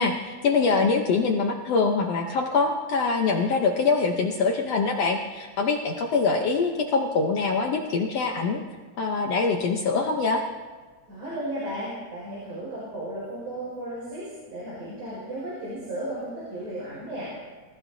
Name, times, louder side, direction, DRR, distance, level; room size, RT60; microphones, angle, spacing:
voice 1, 0.0-8.6 9.0-10.4, left 4 dB, 65° left, 2 dB, 1.7 m, -24 dB
voice 2, 11.1-17.3, right 1 dB, 70° right, -7 dB, 6.9 m, -34 dB
27.0 x 15.0 x 2.8 m, 1.4 s
omnidirectional pair, 3.7 m